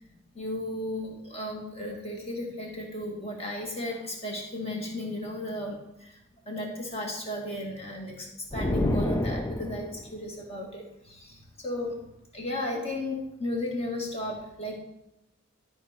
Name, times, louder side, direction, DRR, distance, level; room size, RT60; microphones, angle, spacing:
voice 1, 0.3-6.2 6.5-12.0 12.3-14.8, left 1 dB, 30° left, -1 dB, 2.1 m, -34 dB
sound 1, 8.5-10.1, left 1 dB, 15° left, 0.3 m, -28 dB
12.5 x 4.7 x 4.4 m, 0.91 s
head